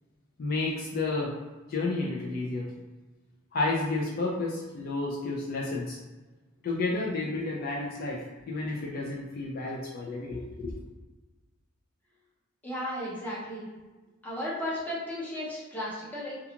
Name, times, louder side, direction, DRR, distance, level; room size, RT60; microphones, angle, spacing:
voice 1, 0.4-1.4 1.7-2.7 3.5-6.0 6.6-10.8, left 2 dB, 45° left, -3 dB, 0.4 m, -31 dB
voice 2, 12.6-13.7 14.2-16.4, left 1 dB, 10° left, -7 dB, 0.8 m, -34 dB
2.4 x 2.3 x 2.8 m, 1.2 s
head